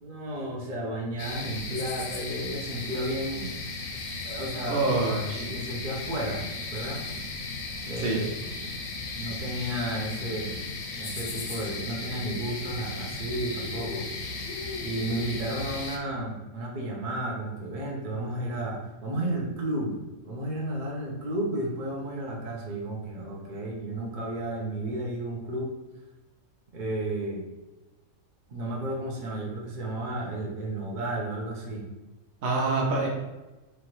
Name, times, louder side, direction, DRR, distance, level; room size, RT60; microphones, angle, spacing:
voice 1, 0.0-3.5 4.2-4.8 5.2-7.0 7.8-8.2 9.2-10.6 11.0-14.1 14.8-20.0 20.2-25.7 26.7-27.4 28.5-31.9, right 1 dB, 40° right, -2 dB, 0.8 m, -33 dB
sound 1, 1.2-16.0, left 3 dB, 70° left, 1.0 m, -36 dB
voice 2, 4.7-5.5 8.0-8.3 32.4-33.1, right 3 dB, 70° right, -2 dB, 1.3 m, -26 dB
4.6 x 2.6 x 3.0 m, 1.1 s
omnidirectional pair, 1.5 m